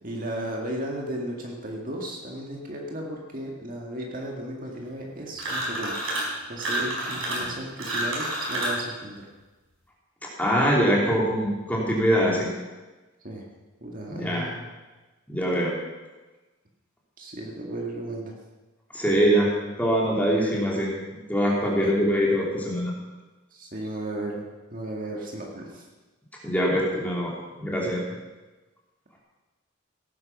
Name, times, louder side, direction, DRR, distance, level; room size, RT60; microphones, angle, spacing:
voice 1, 0.0-6.0 6.5-9.3 13.2-13.5 13.8-14.7 17.2-18.3 21.8-21.9 23.5-25.9, right 1 dB, 40° right, -1 dB, 1.9 m, -35 dB
sound 1, 5.4-6.3 6.6-8.8, right 1 dB, 75° right, 4.8 m, -29 dB
voice 2, 10.4-12.5 14.2-14.4 15.3-15.7 18.9-19.5 19.8-20.9 21.3-22.9 26.4-27.3 27.6-28.0, equal, 10° left, -4 dB, 3.0 m, -23 dB
17.0 x 9.7 x 6.0 m, 1.2 s
head